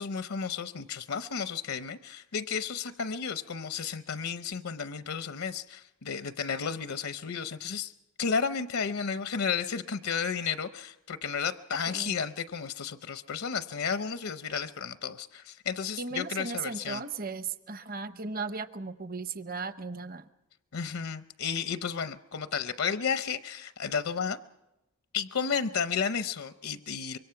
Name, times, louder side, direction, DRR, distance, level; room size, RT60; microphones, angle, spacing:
voice 1, 0.0-7.9 8.2-17.0 20.7-24.4 25.1-27.2, left 6 dB, 70° left, 11 dB, 0.7 m, -32 dB
voice 2, 16.0-20.3, right 4 dB, 40° right, 11 dB, 0.8 m, -36 dB
25.0 x 23.0 x 5.8 m, 0.96 s
head